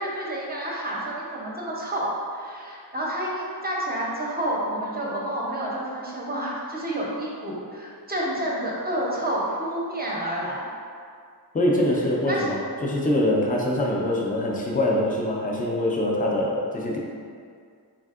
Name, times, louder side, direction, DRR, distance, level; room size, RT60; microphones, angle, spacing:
voice 1, 0.0-2.1 2.3-10.6 12.3-12.5, right 1 dB, 25° right, -4 dB, 0.6 m, -29 dB
voice 2, 11.5-17.0, left 1 dB, 20° left, -2 dB, 0.4 m, -24 dB
3.5 x 2.5 x 2.4 m, 2.2 s
wide cardioid pair, 65°, 42 cm